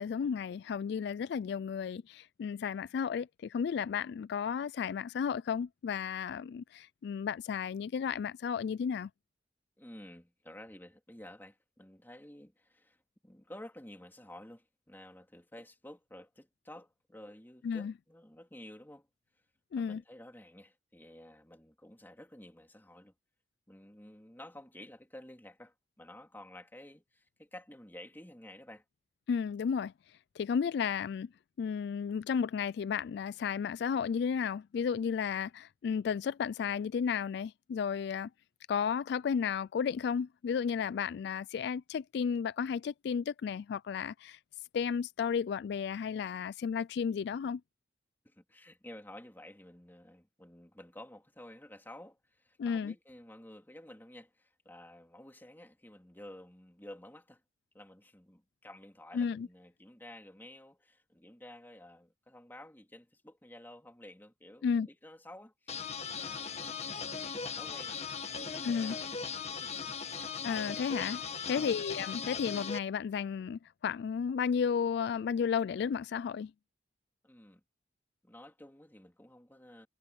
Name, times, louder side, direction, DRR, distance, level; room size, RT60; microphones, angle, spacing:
voice 1, 0.0-9.1 17.6-17.9 19.7-20.0 29.3-29.9 30.4-31.3 31.6-38.3 38.7-44.4 44.7-47.6 52.6-52.9 59.1-59.5 64.6-64.9 68.6-69.0 70.4-71.2 71.5-76.5, left 6 dB, 65° left, 0.3 m, -33 dB
voice 2, 9.8-19.1 19.8-23.1 23.7-28.8 48.2-57.4 57.7-69.1 69.5-69.7 71.4-71.8 77.2-77.6 78.2-79.9, left 1 dB, 10° left, 2.9 m, -52 dB
sound 1, 65.7-72.8, left 5 dB, 35° left, 1.6 m, -39 dB
head